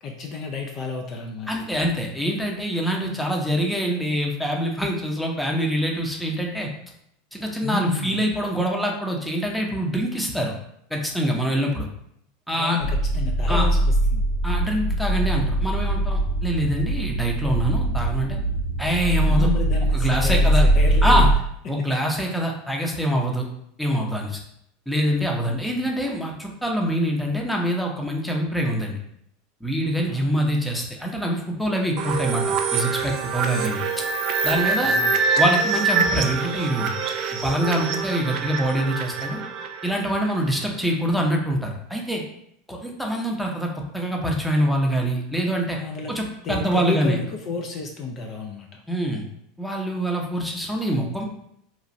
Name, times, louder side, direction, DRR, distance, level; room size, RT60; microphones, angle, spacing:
voice 1, 0.0-1.5 7.6-8.2 12.5-14.2 19.3-21.3 25.4-25.9 30.1-30.6 34.8-35.2 45.7-46.2 46.4-48.8, left 3 dB, 40° left, 3 dB, 0.4 m, -31 dB
voice 2, 1.5-6.7 7.3-10.5 10.9-11.9 12.5-12.8 13.5-13.7 14.4-18.4 18.8-19.5 19.9-20.6 21.0-21.3 21.7-23.5 23.8-24.4 24.9-29.0 29.6-33.8 34.4-35.0 35.4-36.9 37.4-39.4 39.8-42.2 42.7-45.8 46.1-47.2 48.9-49.2 49.6-51.2, equal, 5° left, 0 dB, 0.6 m, -25 dB
sound 1, 12.8-21.3, right 1 dB, 75° left, 1.3 m, -21 dB
sound 2, 32.0-40.6, right 4 dB, 50° right, 0.3 m, -25 dB
3.0 x 2.4 x 2.6 m, 0.73 s
hypercardioid pair, 90°, 0 cm